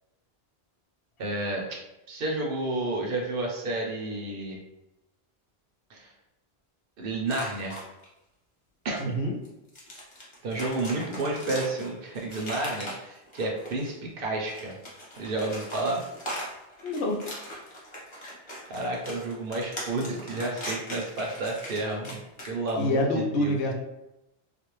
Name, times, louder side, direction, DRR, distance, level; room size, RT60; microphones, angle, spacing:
voice 1, 1.2-1.7 2.1-4.6 5.9-6.1 7.0-7.8 8.8-9.0 10.4-14.8 15.2-16.0 18.7-22.2 22.5-23.6, right 2 dB, 65° right, 0 dB, 0.7 m, -31 dB
sound 1, 7.3-8.1 9.0-9.1 9.5-14.0 14.4-22.9, equal, 30° left, 0.6 m, -40 dB
voice 2, 9.0-9.3 16.8-17.2 22.8-23.7, left 1 dB, 80° left, 1 dB, 0.8 m, -26 dB
2.5 x 2.1 x 2.9 m, 0.93 s
omnidirectional pair, 1.1 m